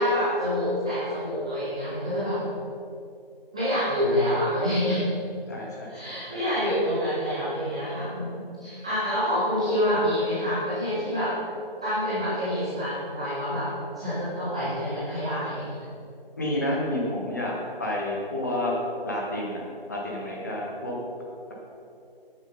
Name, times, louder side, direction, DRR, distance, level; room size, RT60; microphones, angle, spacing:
voice 1, 0.0-2.4 3.5-5.1 5.9-11.4 11.8-13.7 14.0-15.8, equal, 5° right, -14 dB, 0.9 m, -27 dB
voice 2, 5.5-5.9 6.3-6.4 16.4-18.7 19.0-19.6 19.9-21.0, left 1 dB, 20° left, -3 dB, 1.0 m, -29 dB
9.0 x 8.7 x 5.6 m, 2.6 s
figure-of-eight pair, 165°, 30 cm